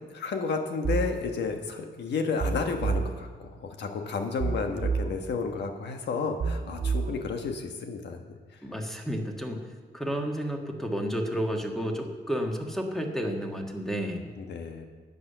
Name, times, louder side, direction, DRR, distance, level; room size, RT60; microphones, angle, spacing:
voice 1, 0.1-8.2 14.4-14.9, left 4 dB, 85° left, 4 dB, 1.4 m, -32 dB
sound 1, 0.8-1.2 2.4-3.2 4.4-5.2 6.4-7.2, right 5 dB, 65° right, 1.3 m, -29 dB
voice 2, 8.6-9.6 9.9-14.3, equal, ahead, 2 dB, 1.6 m, -31 dB
10.5 x 8.5 x 6.8 m, 1.4 s
cardioid pair, 120°, 17 cm